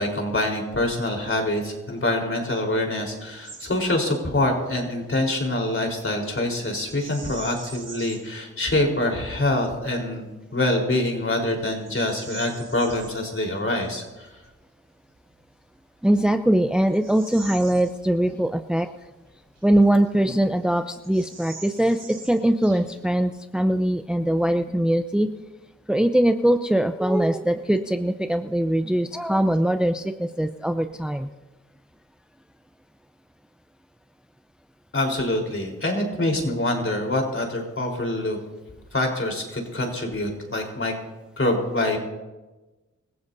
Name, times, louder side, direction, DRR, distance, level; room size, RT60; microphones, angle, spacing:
voice 1, 0.0-14.3 34.9-38.4 38.9-40.9 41.4-42.0, left 1 dB, 45° left, 1 dB, 4.0 m, -25 dB
Bird vocalization bird call bird song, 3.4-3.7 4.0-4.3 6.8-8.3 8.9-9.0 9.6-10.0 10.6-10.7 11.2-13.1 15.2-15.3 16.0-18.4 18.8-18.9 19.6-20.4 20.6-20.7 21.0-23.1, right 3 dB, 85° right, 4.2 m, -43 dB
voice 2, 16.0-18.9 19.6-25.3 25.9-31.3, right 1 dB, 5° right, 8 dB, 0.6 m, -22 dB
26.0 x 15.0 x 2.7 m, 1.1 s
cardioid pair, 50°, 31 cm